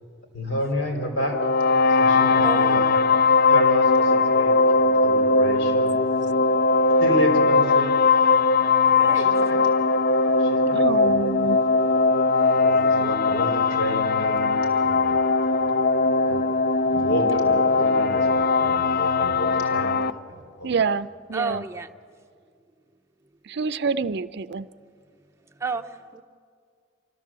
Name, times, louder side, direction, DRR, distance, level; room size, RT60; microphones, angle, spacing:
voice 1, 0.3-1.4 2.0-3.0 3.5-5.9 7.0-8.0 9.0-9.6 10.4-11.2 12.6-15.2 16.3-16.4 16.8-20.0 20.3-20.7, left 1 dB, 70° left, 2 dB, 3.8 m, -30 dB
sound 1, 1.3-20.1, left 3 dB, 50° left, 0.4 m, -20 dB
voice 2, 2.4-3.0 9.0-9.3 15.4-15.5 21.3-21.9 25.6-26.2, right 4 dB, 15° right, 5 dB, 0.8 m, -31 dB
voice 3, 10.6-11.6 20.6-21.6 23.4-24.7, right 4 dB, 60° right, 14 dB, 0.5 m, -27 dB
29.0 x 13.5 x 7.4 m, 2.2 s
head